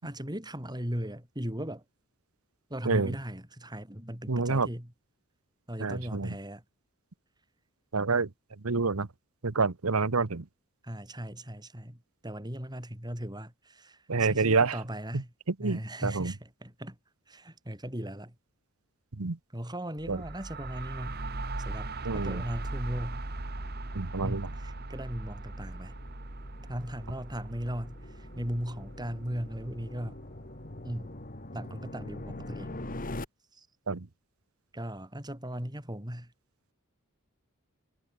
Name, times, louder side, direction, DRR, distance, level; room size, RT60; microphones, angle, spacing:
voice 1, 0.0-1.8 2.7-4.9 5.7-6.6 10.8-15.3 15.6-17.0 17.3-18.3 19.5-21.2 21.6-23.2 24.2-25.9 26.6-30.2 30.8-31.1 31.5-32.9 33.5-33.7 34.7-36.3, equal, 20° right, 5.7 m, -38 dB
voice 2, 2.8-3.2 4.3-4.7 5.8-6.4 7.9-8.3 8.6-9.1 9.4-10.4 14.1-14.8 15.1-16.3 19.2-19.4 20.1-20.2 22.0-22.4 23.9-24.5 33.9-34.1, right 4 dB, 85° right, 1.1 m, -28 dB
sound 1, 20.0-31.6, right 2 dB, 50° right, 2.0 m, -40 dB
sound 2, 22.7-33.3, left 1 dB, 40° left, 2.0 m, -44 dB
head